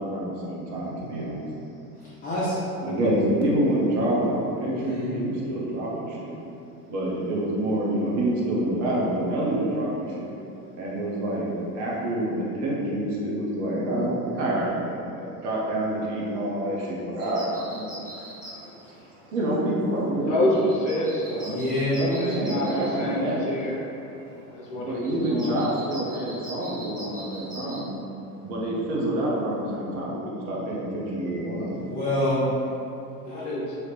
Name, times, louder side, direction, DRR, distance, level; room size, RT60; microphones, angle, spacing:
voice 1, 0.0-1.5 2.8-6.4 6.9-10.3 10.8-17.9 19.3-20.5 22.0-23.5 24.9-27.9 28.4-31.9, right 1 dB, 40° right, -4 dB, 0.7 m, -27 dB
voice 2, 2.0-2.6 4.7-5.2 18.8-18.9 21.4-22.1 31.9-32.5 33.2-33.5, left 1 dB, 20° left, -10 dB, 0.5 m, -27 dB
sound 1, 17.2-27.8, right 1 dB, 20° right, 1.2 m, -43 dB
voice 3, 20.2-21.6 22.2-23.9 24.5-25.9 33.3-33.8, left 1 dB, 50° left, -4 dB, 0.7 m, -28 dB
2.8 x 2.5 x 3.2 m, 2.7 s
figure-of-eight pair, 85°, 48 cm